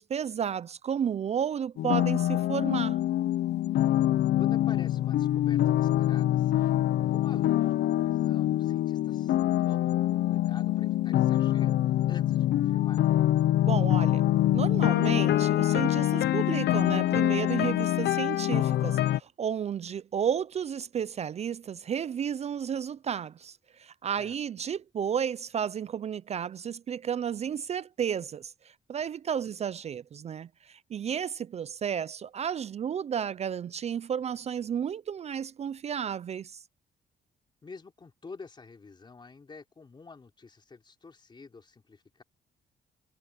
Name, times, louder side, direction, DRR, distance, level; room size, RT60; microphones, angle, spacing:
voice 1, 0.0-3.0 13.7-14.2 14.5-36.6, right 8 dB, 40° right, 0.4 m, -32 dB
sound 1, 1.8-19.2, left 13 dB, 75° left, 0.5 m, -25 dB
voice 2, 4.4-6.7 7.1-11.8 12.1-13.1 24.2-24.4 37.6-42.2, left 4 dB, 25° left, 3.6 m, -49 dB
cardioid pair, 150°, 18 cm